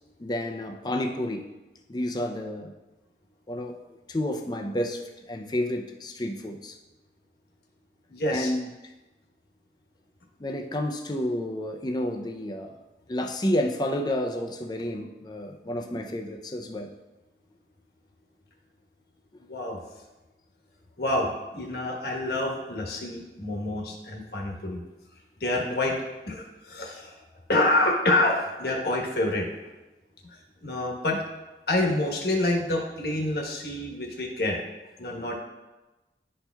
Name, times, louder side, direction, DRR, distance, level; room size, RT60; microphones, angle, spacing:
voice 1, 0.2-1.5 1.9-2.7 3.5-3.8 4.1-6.8 8.3-8.9 10.4-12.8 13.1-16.9 19.3-19.4 25.6-25.7, left 1 dB, 25° left, 3 dB, 0.5 m, -30 dB
voice 2, 8.1-8.5 19.5-19.8 21.0-24.8 25.4-26.0 26.3-27.2 27.5-29.5 30.2-31.2 31.7-34.6 35.0-35.4, left 1 dB, 60° left, 0 dB, 1.1 m, -27 dB
11.0 x 4.4 x 2.3 m, 1.1 s
head